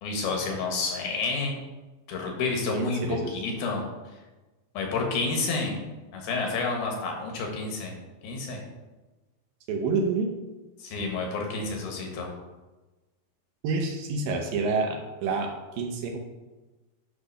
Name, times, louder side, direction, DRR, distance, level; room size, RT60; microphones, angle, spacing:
voice 1, 0.0-1.6 2.1-3.8 4.7-5.7 6.1-7.9 8.2-8.6 10.8-12.3, left 3 dB, 75° left, 1 dB, 3.3 m, -29 dB
voice 2, 2.7-3.4 9.7-10.3 13.6-16.2, right 4 dB, 75° right, 3 dB, 2.4 m, -28 dB
9.9 x 3.4 x 6.6 m, 1.2 s
omnidirectional pair, 4.5 m